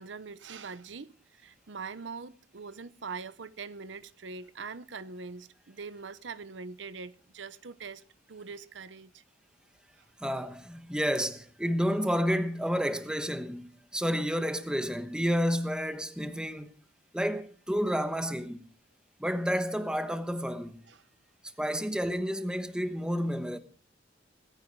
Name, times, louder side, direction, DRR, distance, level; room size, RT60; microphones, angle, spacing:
voice 1, 0.0-9.2 10.0-10.1 20.9-21.1, right 4 dB, 70° right, 0.8 m, -43 dB
voice 2, 10.2-16.7 17.1-18.6 19.2-20.8 21.6-23.6, equal, 5° right, 1.1 m, -30 dB
17.5 x 15.0 x 4.6 m
head